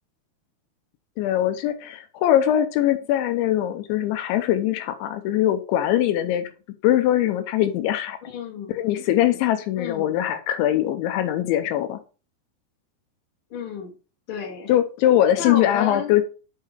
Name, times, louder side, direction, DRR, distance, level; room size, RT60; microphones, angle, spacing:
voice 1, 1.2-6.5 6.8-8.2 8.7-12.0 14.7-16.2, left 12 dB, 85° left, 9 dB, 3.1 m, -22 dB
voice 2, 8.3-8.7 9.8-10.1 13.5-13.9 14.3-14.7 15.4-16.1, left 6 dB, 40° left, -1 dB, 2.1 m, -31 dB
6.6 x 5.7 x 4.5 m, 0.34 s
omnidirectional pair, 5.3 m